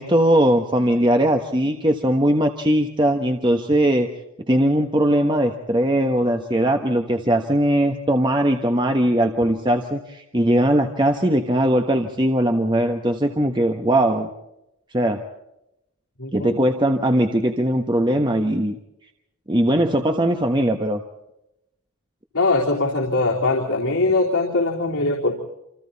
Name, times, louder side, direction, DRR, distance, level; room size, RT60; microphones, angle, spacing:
voice 1, 0.0-4.1 4.5-14.3 14.9-15.2 16.3-18.8 19.5-21.0, right 1 dB, 20° right, 4 dB, 1.3 m, -20 dB
voice 2, 16.2-16.6 22.3-25.3, left 2 dB, 85° left, -4 dB, 3.8 m, -21 dB
28.0 x 27.0 x 4.2 m, 0.86 s
head